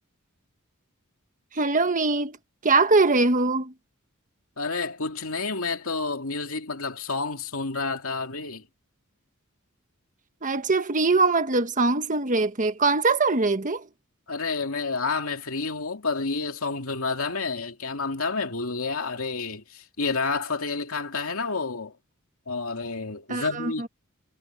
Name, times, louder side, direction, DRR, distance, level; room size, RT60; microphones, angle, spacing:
voice 1, 1.5-2.4 2.6-3.7 10.4-13.8 23.3-23.9, right 3 dB, 40° right, 1.4 m, -22 dB
voice 2, 4.6-8.7 14.3-21.9 22.5-23.9, left 4 dB, 70° left, 2.8 m, -29 dB
head